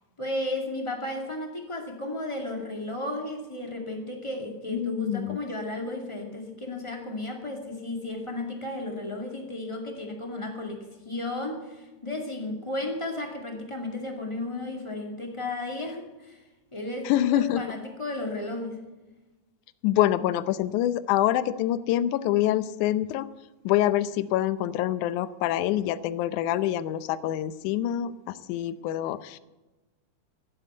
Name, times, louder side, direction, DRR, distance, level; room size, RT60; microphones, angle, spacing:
voice 1, 0.2-16.4 16.7-18.8, left 2 dB, 10° left, 1 dB, 1.6 m, -34 dB
voice 2, 4.7-5.4 17.1-17.6 19.8-23.3 23.7-29.4, left 13 dB, 75° left, 14 dB, 2.0 m, -26 dB
16.0 x 7.9 x 9.1 m, 1.1 s
omnidirectional pair, 3.9 m